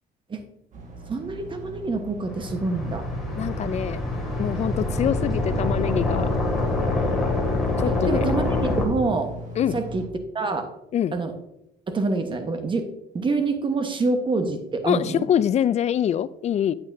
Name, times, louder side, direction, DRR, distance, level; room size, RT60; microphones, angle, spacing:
sound 1, 0.7-10.1, equal, 45° right, 1.6 m, -38 dB
voice 1, 1.1-3.1 7.8-9.3 9.7-10.0 10.3-10.7 11.1-11.3 11.9-12.9 13.1-15.3, right 3 dB, 30° right, 7 dB, 1.2 m, -26 dB
sound 2, 2.3-8.9, left 2 dB, ahead, 2.2 m, -25 dB
voice 2, 3.4-4.0 4.4-6.3 7.8-8.3 9.6-9.8 10.9-11.1 14.9-16.7, left 9 dB, 40° left, 16 dB, 0.4 m, -24 dB
8.7 x 8.7 x 2.7 m, 0.86 s
cardioid pair, 110°, 17 cm